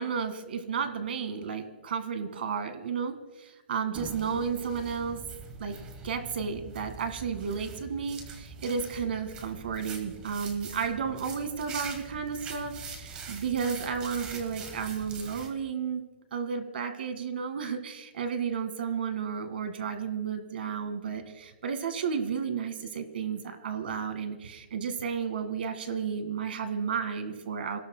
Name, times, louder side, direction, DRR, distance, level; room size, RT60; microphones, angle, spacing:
voice 1, 0.0-5.2 5.6-5.8 6.0-16.1 16.3-27.8, right 6 dB, 55° right, 9 dB, 1.9 m, -32 dB
sound 1, 3.9-15.5, right 4 dB, 15° right, 1.2 m, -43 dB
27.0 x 18.0 x 2.2 m, 1.2 s
hypercardioid pair, 180°, 6 cm